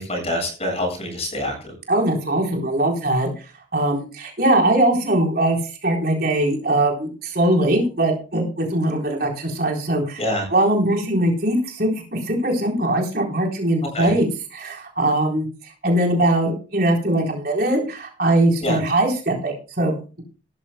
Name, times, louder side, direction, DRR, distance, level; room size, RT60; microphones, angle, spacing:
voice 1, 0.0-1.7 10.2-10.4 13.9-14.1 18.6-18.8, left 1 dB, 30° left, 2 dB, 7.9 m, -25 dB
voice 2, 1.9-3.3 3.7-10.2 10.5-15.5 15.8-20.2, right 1 dB, 50° right, 0 dB, 4.0 m, -21 dB
18.0 x 13.5 x 2.3 m, 0.35 s
head